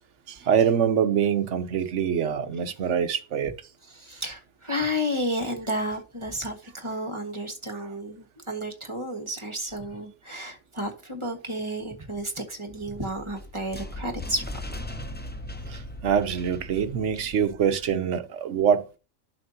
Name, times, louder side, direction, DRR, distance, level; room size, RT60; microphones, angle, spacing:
voice 1, 0.3-3.5 15.7-18.8, right 8 dB, 70° right, 1.1 m, -24 dB
voice 2, 3.8-14.4, equal, 25° right, 1.6 m, -32 dB
sound 1, 12.8-18.0, left 1 dB, 15° left, 0.4 m, -39 dB
11.5 x 6.6 x 2.8 m
omnidirectional pair, 1.3 m